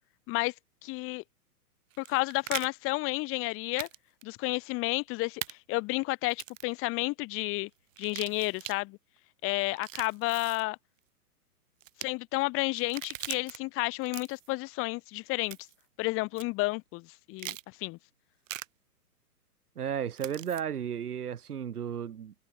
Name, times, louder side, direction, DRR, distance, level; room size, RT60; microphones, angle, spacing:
voice 1, 0.8-1.2 2.0-3.9 4.2-7.7 8.0-9.0 9.4-10.8 12.0-15.6 16.0-18.0, left 23 dB, 30° left, 3.3 m, -31 dB
sound 1, 1.9-2.7 3.8-4.0 4.2-4.3 5.4-5.5 6.3-6.7 7.9-8.8 9.7-10.6 11.8-12.1 12.8-13.6 14.0-14.5 15.5-15.8 16.4-16.5 17.4-17.6 18.5-18.7 20.2-20.6, right 12 dB, 55° right, 3.2 m, -40 dB
voice 2, 19.8-22.3, right 8 dB, 75° right, 5.3 m, -34 dB
hypercardioid pair, 140°, 46 cm